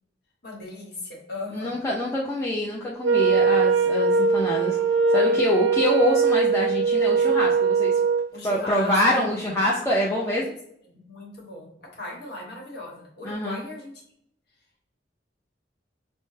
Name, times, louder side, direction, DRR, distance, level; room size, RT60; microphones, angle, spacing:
voice 1, 0.4-1.7 8.3-9.5 10.1-10.3 10.8-14.0, left 2 dB, 60° left, -1 dB, 1.2 m, -38 dB
voice 2, 1.5-4.8 5.1-8.0 8.4-10.5 13.2-13.6, left 1 dB, 15° left, -5 dB, 0.5 m, -25 dB
Wind instrument woodwind instrument, 3.0-8.3, right 4 dB, 85° right, 0.5 m, -21 dB
5.5 x 2.1 x 3.2 m, 0.69 s
head